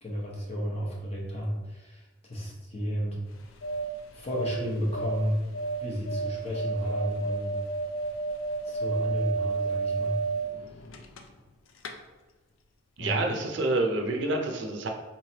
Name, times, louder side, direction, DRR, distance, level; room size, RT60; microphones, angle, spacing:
voice 1, 0.0-2.0 2.3-3.2 4.1-5.4 5.8-7.5 8.7-10.2 13.0-13.1, equal, 30° left, -3 dB, 0.9 m, -32 dB
sound 1, 3.3-11.5 11.8-11.9, right 4 dB, 80° left, 0.4 m, -32 dB
voice 2, 13.0-14.9, right 2 dB, 60° right, 3 dB, 0.5 m, -28 dB
4.2 x 3.2 x 2.8 m, 1.2 s
head